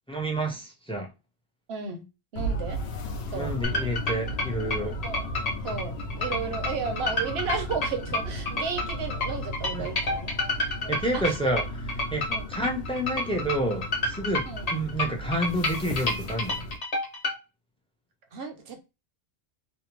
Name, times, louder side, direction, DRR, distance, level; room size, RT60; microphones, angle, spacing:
voice 1, 0.1-1.1 3.3-5.0 9.7-9.9 10.9-11.6 12.1-14.4 14.7-16.6, right 1 dB, 10° left, 0.4 m, -29 dB
voice 2, 1.7-2.1 2.3-2.8 3.3-3.5 5.0-5.3 5.6-10.3 10.8-11.3 12.3-12.5 14.5-14.7 18.3-18.8, right 5 dB, 70° right, 0.9 m, -34 dB
sound 1, 2.3-16.8, equal, 75° left, 0.8 m, -35 dB
sound 2, 3.6-17.4, left 2 dB, 40° left, 0.7 m, -29 dB
2.6 x 2.0 x 3.0 m
omnidirectional pair, 1.1 m